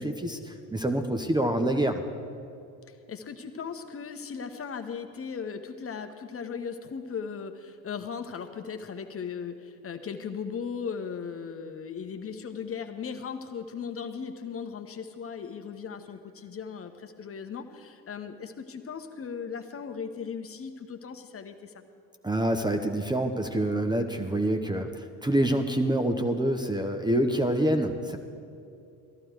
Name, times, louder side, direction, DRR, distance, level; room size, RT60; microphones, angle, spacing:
voice 1, 0.0-2.0 22.2-28.2, right 1 dB, 10° right, 6 dB, 1.0 m, -26 dB
voice 2, 2.9-21.7, left 6 dB, 30° left, 7 dB, 1.2 m, -37 dB
19.0 x 14.5 x 4.7 m, 2.6 s
figure-of-eight pair, 60°, 49 cm